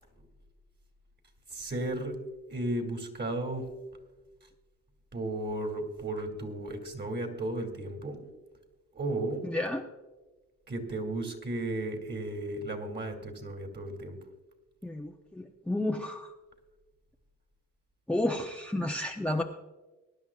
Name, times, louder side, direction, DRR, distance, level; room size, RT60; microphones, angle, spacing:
voice 1, 1.5-2.2 2.5-3.7 5.1-8.2 8.9-9.5 10.7-14.2, right 1 dB, 35° right, 4 dB, 2.8 m, -34 dB
voice 2, 9.4-9.8 14.8-16.3 18.1-19.4, left 1 dB, 5° left, 3 dB, 0.9 m, -31 dB
22.5 x 11.0 x 2.5 m, 1.2 s
cardioid pair, 90°, 30 cm